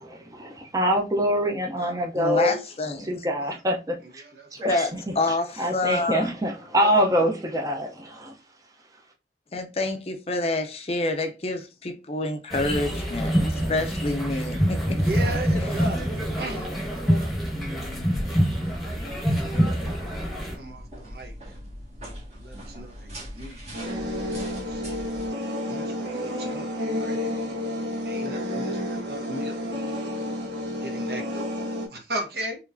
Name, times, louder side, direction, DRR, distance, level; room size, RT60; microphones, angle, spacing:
voice 1, 0.7-2.6 3.0-4.2 4.5-5.0 5.6-8.3, equal, 20° right, 0.6 m, -24 dB
voice 2, 2.1-3.1 4.7-6.3 9.5-15.0, left 2 dB, 35° left, 0.6 m, -28 dB
voice 3, 4.0-4.7 6.8-6.9 15.0-16.1 16.4-17.4 18.2-19.2 20.0-21.6 22.3-23.1 23.3-23.9 24.4-24.8 25.7-27.2 28.0-29.8 30.8-32.6, right 1 dB, 60° right, 1.1 m, -37 dB
sound 1, 12.5-20.5, equal, ahead, 1.2 m, -25 dB
sound 2, 18.9-25.3, equal, 40° right, 1.7 m, -41 dB
sound 3, 23.7-31.9, left 1 dB, 85° right, 1.5 m, -30 dB
4.7 x 3.1 x 2.6 m
head